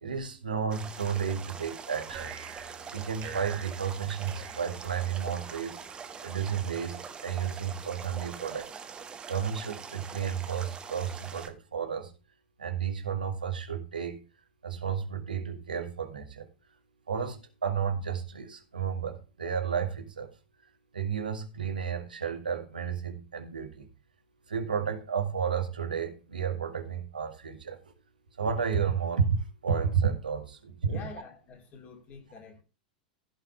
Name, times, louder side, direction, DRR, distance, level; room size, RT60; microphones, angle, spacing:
voice 1, 0.0-2.3 2.9-5.8 6.2-7.0 7.2-8.7 9.3-12.1 12.6-14.2 14.6-16.5 17.1-20.3 20.9-23.9 24.5-27.8 28.4-31.1, right 7 dB, 75° right, 1.9 m, -32 dB
sound 1, 0.7-11.5, right 6 dB, 20° right, 1.3 m, -43 dB
sound 2, 2.1-5.5, right 7 dB, 40° right, 2.3 m, -45 dB
voice 2, 30.9-32.6, left 5 dB, 30° left, 3.0 m, -46 dB
15.5 x 5.8 x 3.3 m
figure-of-eight pair, 90°, 5 cm